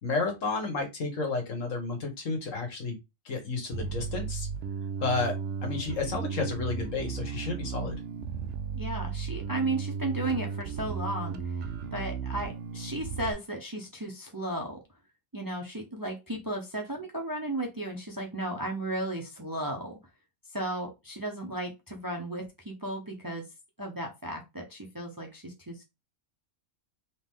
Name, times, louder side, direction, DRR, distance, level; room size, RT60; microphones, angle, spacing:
voice 1, 0.0-3.0 3.2-4.5 5.0-5.3 5.6-8.0, left 4 dB, 70° left, 4 dB, 1.6 m, -31 dB
Bass guitar, 3.7-13.3, right 6 dB, 70° right, 0.8 m, -35 dB
voice 2, 8.7-11.6 11.9-14.8 15.3-20.0 20.5-23.5 23.8-25.8, right 1 dB, 20° right, 2 dB, 0.7 m, -34 dB
3.8 x 3.1 x 3.6 m, 0.23 s
omnidirectional pair, 1.4 m